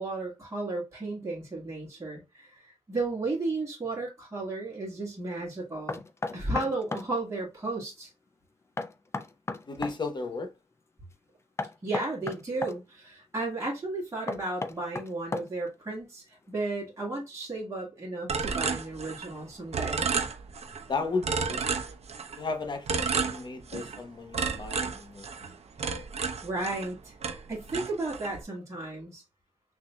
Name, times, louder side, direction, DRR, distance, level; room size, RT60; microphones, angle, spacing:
voice 1, 0.0-2.5 2.9-6.0 6.3-8.1 11.8-20.1 26.4-27.1 27.5-29.2, right 2 dB, 30° right, 1.7 m, -34 dB
Knock, 5.9-7.1 8.8-10.0 11.6-12.8 14.3-15.7, left 3 dB, 25° left, 0.4 m, -34 dB
voice 2, 9.7-10.5 20.9-21.7 22.4-25.3, left 4 dB, 45° left, 0.9 m, -34 dB
sound 1, 18.3-19.4 19.7-20.8 21.2-22.4 22.9-24.0 24.3-26.9 27.2-28.4, right 5 dB, 85° right, 0.7 m, -31 dB
6.2 x 2.6 x 2.3 m
wide cardioid pair, 180°, 11 cm